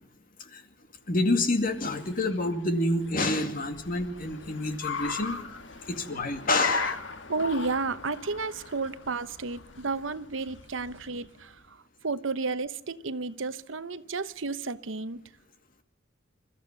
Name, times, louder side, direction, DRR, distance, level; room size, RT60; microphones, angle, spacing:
voice 1, 1.1-5.4 5.9-7.0, left 2 dB, 45° left, 7 dB, 2.3 m, -28 dB
Car, 1.3-11.5, left 4 dB, 70° left, 1.9 m, -39 dB
voice 2, 7.3-15.2, right 4 dB, 80° right, 13 dB, 1.0 m, -32 dB
28.0 x 14.0 x 6.7 m, 0.76 s
head